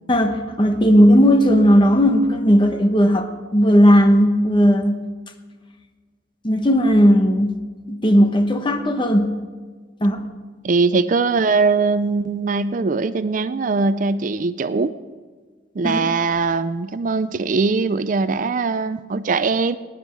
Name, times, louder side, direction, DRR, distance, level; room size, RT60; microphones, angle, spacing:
voice 1, 0.1-5.1 6.4-7.6 7.9-9.4 10.0-10.3 15.8-16.0, equal, 25° left, 7 dB, 1.0 m, -16 dB
voice 2, 10.6-14.9 15.8-19.8, right 4 dB, 45° right, 13 dB, 0.4 m, -21 dB
19.0 x 10.0 x 4.6 m, 1.4 s
head